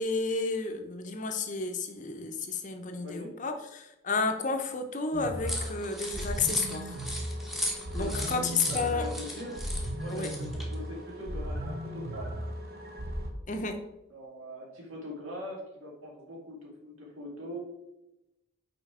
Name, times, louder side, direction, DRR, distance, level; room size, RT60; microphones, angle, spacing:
voice 1, 0.0-6.9 7.9-9.1 10.1-10.3 13.5-13.8, left 4 dB, 35° left, 6 dB, 0.6 m, -32 dB
voice 2, 2.9-3.4 8.0-9.6 9.9-12.3 14.1-17.6, equal, 80° right, -2 dB, 2.2 m, -42 dB
sound 1, 5.1-13.3, right 1 dB, 45° right, 0.9 m, -36 dB
sound 2, 5.5-10.7, left 1 dB, ahead, 0.8 m, -36 dB
5.5 x 4.4 x 4.9 m, 0.92 s
head